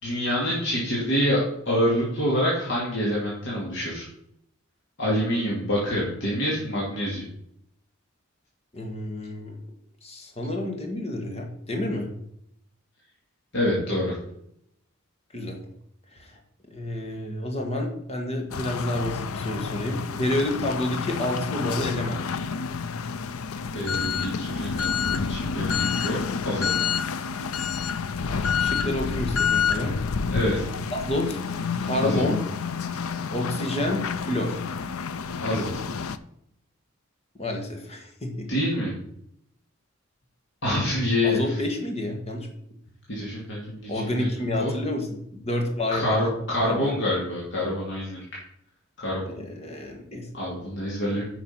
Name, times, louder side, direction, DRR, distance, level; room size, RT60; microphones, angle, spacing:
voice 1, 0.0-4.1 5.0-7.3 13.5-14.1 23.7-26.2 26.4-26.9 30.3-30.6 32.0-32.2 35.4-35.7 38.5-38.9 40.6-41.6 43.1-43.9 44.2-44.3 44.6-44.7 45.9-48.2 49.0-49.2 50.3-51.2, left 1 dB, 60° left, -5 dB, 2.5 m, -26 dB
voice 2, 8.7-9.6 10.0-12.1 15.3-15.6 16.1-16.4 16.7-22.3 28.2-29.9 30.9-31.4 31.8-32.4 33.3-34.6 37.4-38.5 41.2-42.5 43.9-46.2 46.6-46.9 49.2-50.3 51.1-51.2, left 1 dB, 30° left, 3 dB, 1.7 m, -29 dB
sound 1, 18.5-36.2, left 6 dB, 85° left, 0.6 m, -29 dB
9.3 x 5.9 x 5.6 m, 0.75 s
head